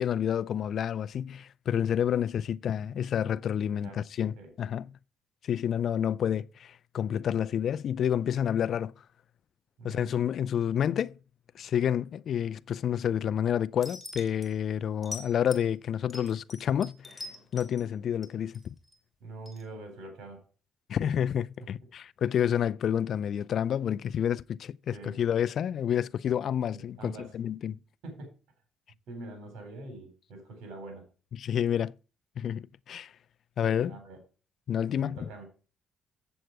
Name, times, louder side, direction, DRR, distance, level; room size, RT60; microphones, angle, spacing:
voice 1, 0.0-4.9 5.4-8.9 9.8-11.2 11.5-17.2 17.5-18.7 20.9-27.8 31.3-31.9 32.4-33.1 33.6-34.0 34.7-35.2, left 9 dB, 60° left, 0.4 m, -29 dB
voice 2, 3.6-4.0 4.4-4.5 9.8-10.2 19.2-20.4 21.6-21.7 24.9-25.2 26.7-27.3 28.0-28.3 29.1-31.1 33.8-34.2 34.9-35.4, right 2 dB, 80° right, 4.0 m, -44 dB
sound 1, 13.8-14.5 15.0-15.7 16.1-17.9 18.2-19.0 19.5-19.6, left 3 dB, 20° left, 2.7 m, -43 dB
8.0 x 7.6 x 4.6 m
cardioid pair, 90°, 0 cm